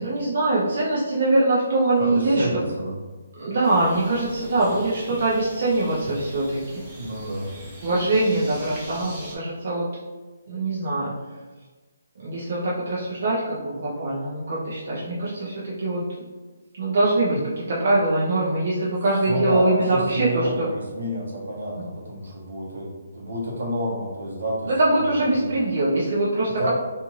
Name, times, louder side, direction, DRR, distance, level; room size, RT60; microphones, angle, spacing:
voice 1, 0.0-2.5 3.4-6.8 7.8-9.8 10.5-11.1 12.2-16.0 16.8-20.3 20.6-20.7 24.8-26.7, right 2 dB, 60° right, -7 dB, 0.7 m, -23 dB
voice 2, 2.0-3.0 6.9-7.5 17.3-17.4 19.2-25.1 25.3-25.5 26.5-26.7, equal, 80° right, -3 dB, 1.0 m, -29 dB
sound 1, 3.6-9.4, right 1 dB, 20° right, 0.6 m, -42 dB
2.6 x 2.4 x 3.1 m, 1.3 s
hypercardioid pair, 165°, 0 cm